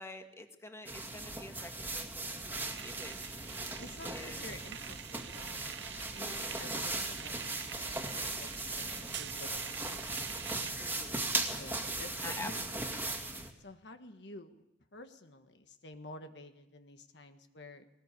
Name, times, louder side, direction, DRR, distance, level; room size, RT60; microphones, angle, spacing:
voice 1, 0.0-4.5 6.2-6.4 10.8-11.2 12.2-13.2, left 2 dB, 15° left, 5 dB, 1.8 m, -48 dB
sound 1, 0.9-13.5, right 2 dB, 10° right, 2.2 m, -38 dB
sound 2, 2.5-10.7, right 9 dB, 70° right, 0.8 m, -46 dB
voice 2, 3.8-10.0 11.5-12.6 13.6-14.6 14.9-17.8, left 2 dB, 70° left, 7 dB, 1.5 m, -51 dB
20.5 x 19.5 x 8.4 m, 0.87 s
head